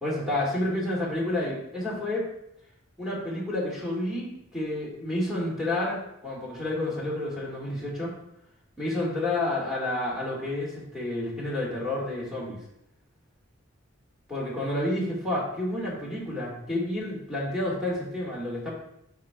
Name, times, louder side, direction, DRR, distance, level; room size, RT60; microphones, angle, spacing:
voice 1, 0.0-2.3 3.0-8.2 8.8-12.6 14.3-18.7, left 1 dB, ahead, -5 dB, 2.1 m, -30 dB
11.0 x 4.3 x 2.5 m, 0.79 s
head